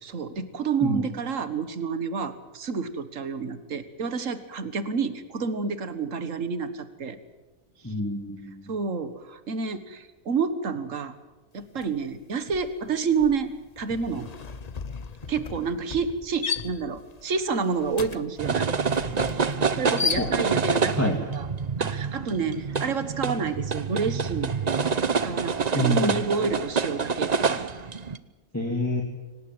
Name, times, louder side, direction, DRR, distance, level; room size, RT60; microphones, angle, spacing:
voice 1, 0.0-7.2 7.8-7.9 8.7-11.1 11.5-14.3 15.3-18.7 19.7-21.5 21.8-25.0 25.2-27.6, right 5 dB, 65° right, 12 dB, 1.9 m, -29 dB
voice 2, 7.8-8.6 20.2-20.3 21.0-21.2 25.7-26.2 28.5-29.0, equal, 10° left, 2 dB, 2.6 m, -26 dB
sound 1, 11.8-12.0 12.3-20.8, left 5 dB, 35° left, 0.8 m, -35 dB
sound 2, 18.4-28.2, right 5 dB, 35° right, 0.9 m, -27 dB
25.5 x 18.5 x 7.9 m, 1.2 s
omnidirectional pair, 1.4 m